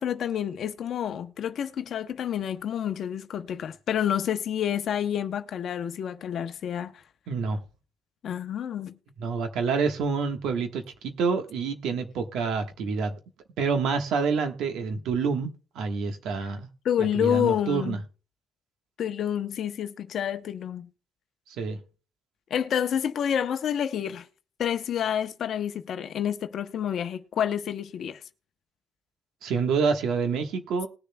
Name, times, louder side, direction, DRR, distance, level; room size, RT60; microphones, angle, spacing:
voice 1, 0.0-7.0 8.2-8.9 16.8-18.0 19.0-20.9 22.5-24.3 24.6-28.2, left 9 dB, 65° left, 0.7 m, -28 dB
voice 2, 7.3-7.6 9.2-13.1 13.6-15.5 15.7-16.7 17.0-18.0 21.6-21.8 29.4-30.9, right 5 dB, 85° right, 1.3 m, -27 dB
20.0 x 6.8 x 2.2 m
cardioid pair, 90°, 0 cm